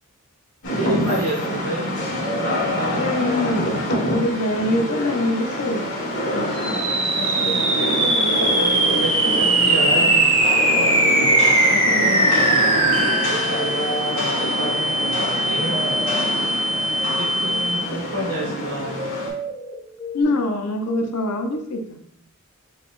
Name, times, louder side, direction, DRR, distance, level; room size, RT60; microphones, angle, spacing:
Rain, 0.6-19.3, equal, 60° left, 1.6 m, -26 dB
voice 1, 0.7-2.0 2.3-3.0 8.0-10.3 11.1-11.5 13.3-16.0 16.4-16.6 17.2-19.1, right 1 dB, 80° right, -2 dB, 1.5 m, -29 dB
sound 1, 1.9-4.2 4.5-20.2, left 2 dB, 5° left, 0.8 m, -36 dB
voice 2, 2.9-3.6 4.1-5.9 6.3-7.7 11.7-12.5 17.9-18.0 20.1-22.0, left 1 dB, 80° left, 5 dB, 0.7 m, -25 dB
sound 2, 6.6-18.1, right 2 dB, 25° right, 0.8 m, -20 dB
4.9 x 4.0 x 2.5 m, 0.70 s
head